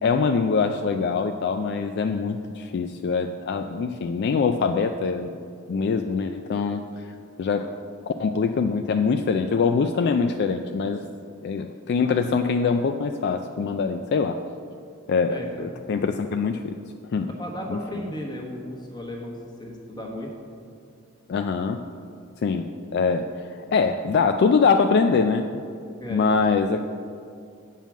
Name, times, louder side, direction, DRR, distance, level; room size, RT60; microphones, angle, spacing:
voice 1, 0.0-5.3 5.7-7.1 7.4-7.8 8.1-11.0 11.4-14.4 15.1-16.8 17.1-17.3 17.7-17.8 21.3-21.8 22.4-25.6 26.1-26.9, left 5 dB, 50° left, 7 dB, 0.3 m, -23 dB
voice 2, 15.3-15.7 17.2-20.3 26.0-26.4, left 1 dB, 20° left, 0 dB, 1.2 m, -35 dB
7.4 x 5.5 x 7.3 m, 2.4 s
head